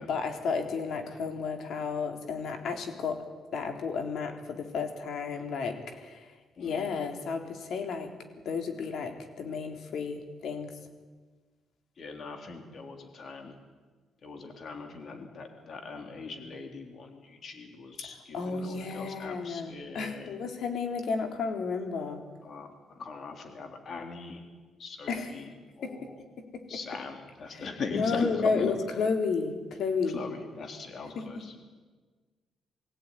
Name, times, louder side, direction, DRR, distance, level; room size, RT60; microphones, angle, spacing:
voice 1, 0.0-3.2 3.5-8.1 8.5-10.7 18.1-22.2 25.1-25.4 25.8-25.9 26.5-26.8 27.5-30.2 31.2-31.4, left 5 dB, 70° left, 5 dB, 3.6 m, -32 dB
voice 2, 6.6-6.9 12.0-13.5 14.2-20.3 22.4-24.4 24.8-25.5 25.8-26.1 26.7-28.7 30.1-31.5, left 4 dB, 55° left, 4 dB, 3.7 m, -40 dB
23.0 x 16.5 x 10.0 m, 1.4 s
cardioid pair, 90°, 0 cm